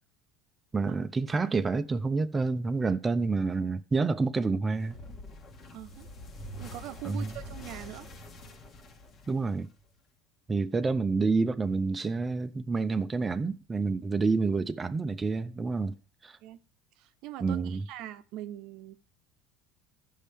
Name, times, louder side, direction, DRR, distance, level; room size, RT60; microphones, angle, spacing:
voice 1, 0.7-5.0 7.0-7.3 9.3-9.7 10.5-15.9 16.2-16.4 17.4-17.8, right 4 dB, 20° right, 0.5 m, -28 dB
sound 1, 4.9-10.0, left 1 dB, 45° left, 1.2 m, -45 dB
voice 2, 5.7-6.1 6.6-8.1 16.4-16.6 17.0-19.0, right 14 dB, 65° right, 0.7 m, -42 dB
14.5 x 5.5 x 3.4 m
supercardioid pair, 110°, 0 cm